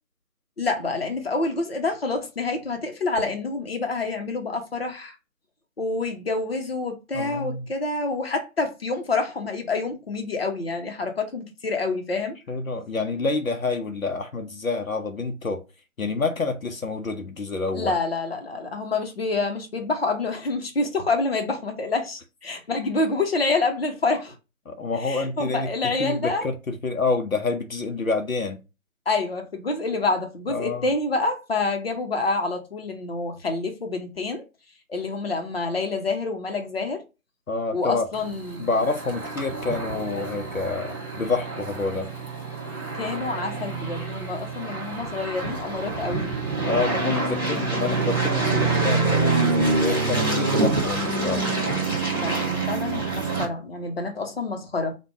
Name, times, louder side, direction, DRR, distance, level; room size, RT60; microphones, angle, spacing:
voice 1, 0.6-5.1 5.8-12.3 17.7-24.3 25.0-26.5 29.1-34.4 34.9-37.0 37.7-38.6 42.9-46.4 47.5-47.6 52.1-55.0, left 3 dB, 45° left, 1.0 m, -27 dB
voice 2, 7.1-7.7 12.5-15.6 16.0-17.9 24.7-28.6 30.5-30.9 37.5-38.1 38.6-42.1 46.6-51.4, left 3 dB, 70° left, 0.9 m, -28 dB
sound 1, 38.1-53.4, right 3 dB, 15° right, 0.8 m, -26 dB
4.7 x 2.5 x 3.4 m
figure-of-eight pair, 160°, 42 cm